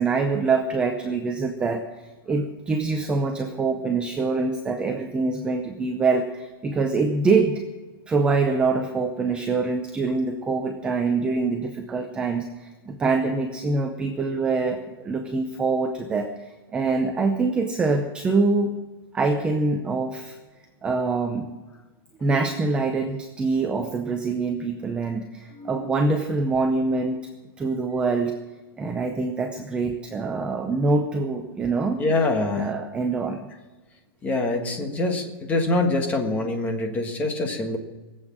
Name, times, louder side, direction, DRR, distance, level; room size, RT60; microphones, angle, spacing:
voice 1, 0.0-1.8 2.3-7.6 8.1-18.7 19.1-20.4 20.8-21.6 22.2-27.2 27.6-28.3 28.8-32.0 32.6-33.5, right 3 dB, 10° right, 5 dB, 0.6 m, -24 dB
voice 2, 25.5-26.1 32.0-32.8 34.2-37.8, left 2 dB, 10° left, 4 dB, 1.5 m, -25 dB
19.5 x 8.1 x 7.4 m, 1.2 s
hypercardioid pair, 170°, 13 cm